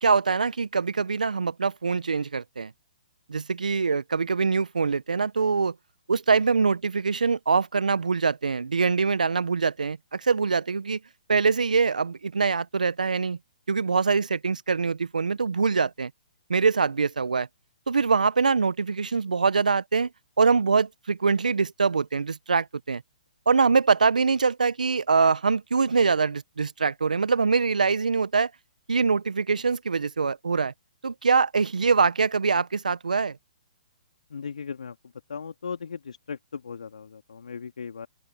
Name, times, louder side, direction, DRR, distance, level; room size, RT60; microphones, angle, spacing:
voice 1, 0.0-2.7 3.3-5.7 6.1-11.0 11.3-13.4 13.7-16.1 16.5-17.5 17.9-20.1 20.4-23.0 23.5-28.5 28.9-30.7 31.0-33.4, right 5 dB, 80° right, 1.4 m, -23 dB
voice 2, 34.3-34.9 35.3-38.1, left 6 dB, 70° left, 2.9 m, -37 dB
open air
figure-of-eight pair, 130°, 4 cm